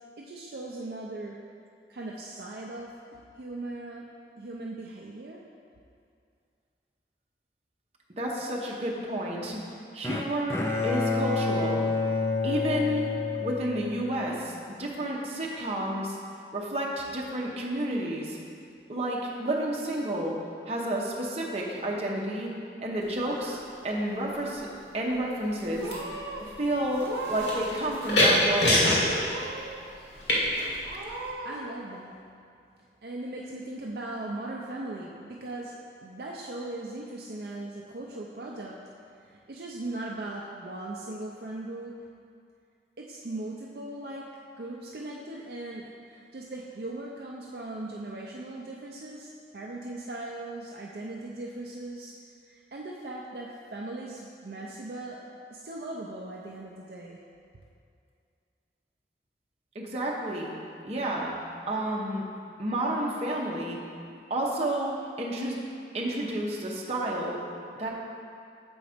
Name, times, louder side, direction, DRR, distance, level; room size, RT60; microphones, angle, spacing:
voice 1, 0.2-1.4 1.9-4.1 4.4-5.4 31.4-32.2 33.0-42.1 43.0-49.3 49.5-52.1 52.4-57.2, right 2 dB, 60° right, -3 dB, 0.5 m, -39 dB
voice 2, 8.2-9.6 9.9-10.6 10.8-11.8 12.4-13.0 13.4-16.2 16.5-18.4 18.9-20.4 20.7-22.5 22.8-23.6 23.8-24.7 24.9-26.3 26.6-28.9 59.7-60.5 60.8-61.3 61.7-62.2 62.6-63.8 64.3-65.6 65.9-67.4 67.8-67.9, right 1 dB, 35° right, -3 dB, 0.9 m, -30 dB
Bowed string instrument, 10.0-14.3, left 3 dB, 15° left, 0.3 m, -28 dB
sound 1, 23.0-23.4 24.3-24.8 25.1-31.3, left 1 dB, 90° left, 1.7 m, -27 dB
Purr / Meow, 23.0-23.9 24.1-24.7 25.4-25.5 25.8-26.4 26.9-27.8 28.1-28.8 29.2-29.8 30.2-30.3 30.8-31.6, right 3 dB, 75° right, 0.9 m, -38 dB
7.0 x 4.0 x 5.0 m, 2.4 s
head